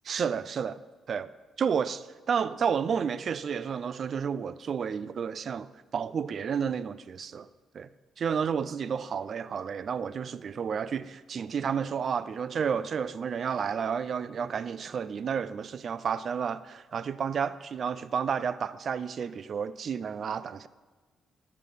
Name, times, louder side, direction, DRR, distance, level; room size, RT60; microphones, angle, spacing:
voice 1, 0.0-0.8 1.1-1.3 1.6-7.5 7.7-7.9 8.2-20.7, right 7 dB, 55° right, 16 dB, 0.4 m, -31 dB
11.5 x 4.7 x 5.0 m, 1.3 s
cardioid pair, 90°, 0 cm